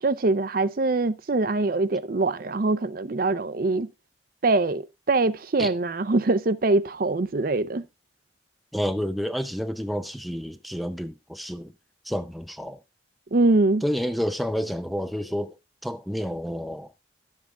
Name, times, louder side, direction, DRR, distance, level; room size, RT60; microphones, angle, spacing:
voice 1, 0.0-3.9 4.4-7.8 13.3-13.8, right 2 dB, 50° right, 0.6 m, -23 dB
voice 2, 8.7-11.7 12.0-12.8 13.8-16.9, equal, ahead, 0.4 m, -30 dB
11.5 x 7.4 x 3.6 m
head